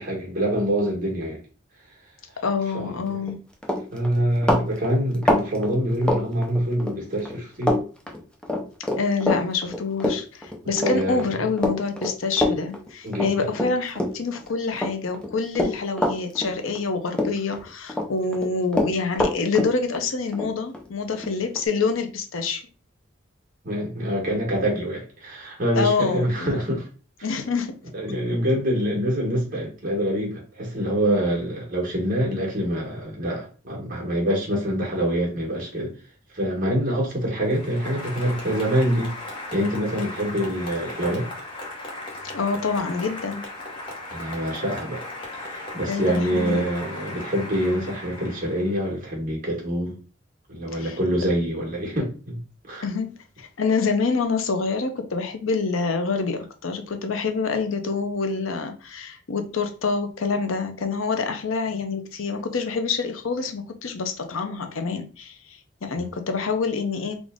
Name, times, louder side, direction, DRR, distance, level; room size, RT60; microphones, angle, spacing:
voice 1, 0.0-1.4 2.7-3.3 3.9-7.8 10.8-11.3 13.0-13.5 23.6-26.9 27.9-35.9 36.3-39.1 39.5-41.3 44.1-49.9 50.5-52.4 52.7-52.8 65.9-66.1, equal, 45° right, 1.5 m, -25 dB
voice 2, 2.4-3.4 9.0-22.6 25.7-26.6 27.2-27.8 42.3-43.4 45.9-46.6 50.7-51.0 52.8-53.1 53.4-67.2, left 4 dB, 90° left, 0.6 m, -26 dB
Run, 3.1-3.3 3.6-7.0 7.3-14.4 14.7-16.9 17.1-18.1 18.3-21.7, left 1 dB, 5° left, 0.5 m, -25 dB
Applause, 37.4-49.0, left 2 dB, 25° left, 1.0 m, -37 dB
3.8 x 2.5 x 3.6 m
head